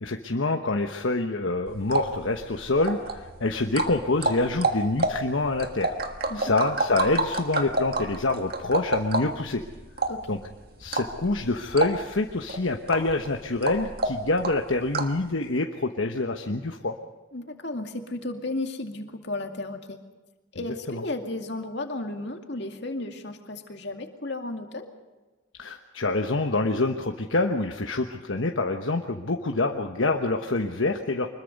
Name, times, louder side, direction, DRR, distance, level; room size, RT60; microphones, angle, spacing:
voice 1, 0.0-6.0 6.4-9.6 10.3-10.4 10.8-17.0 20.9-21.0 25.6-31.3, left 2 dB, 70° left, 3 dB, 1.2 m, -26 dB
sound 1, 1.7-15.2, right 2 dB, 50° right, 1.6 m, -30 dB
voice 2, 17.3-20.0 20.5-24.9, left 2 dB, 55° left, 4 dB, 2.3 m, -34 dB
24.5 x 21.5 x 5.4 m, 1.2 s
head